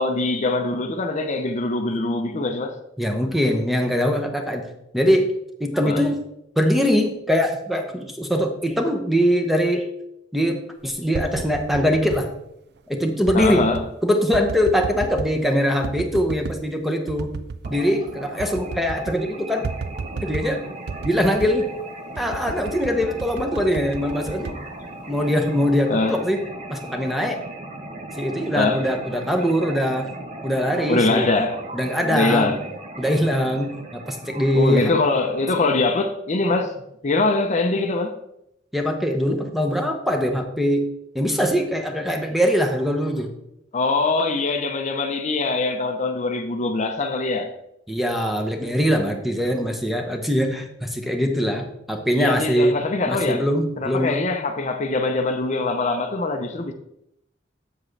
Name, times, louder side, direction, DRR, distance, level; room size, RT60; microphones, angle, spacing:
voice 1, 0.0-2.8 5.9-6.0 13.3-13.8 25.9-26.2 28.5-28.8 30.9-31.6 32.0-32.6 34.5-36.7 37.0-38.2 43.7-47.5 52.1-53.5 53.8-56.7, left 3 dB, 40° left, 0.6 m, -23 dB
voice 2, 3.0-4.7 4.9-5.3 5.6-6.2 6.6-9.9 10.3-12.3 12.9-13.7 14.0-17.3 17.7-19.6 20.2-20.6 21.0-21.7 22.2-24.6 25.1-26.4 26.7-27.4 28.2-30.1 30.4-31.3 31.7-32.5 33.0-34.9 38.7-43.3 47.9-52.8 53.1-54.2, equal, ahead, 0.8 m, -22 dB
sound 1, 10.9-12.2 13.2-13.9 14.3-15.4 15.8-16.6 17.1-17.8 18.1-18.2 18.4-19.2 19.6-20.5 20.9-21.6 22.1-25.3 25.7-26.1, right 4 dB, 60° right, 0.5 m, -33 dB
sound 2, 17.6-35.8, right 2 dB, 40° right, 0.9 m, -37 dB
7.4 x 7.4 x 3.2 m
head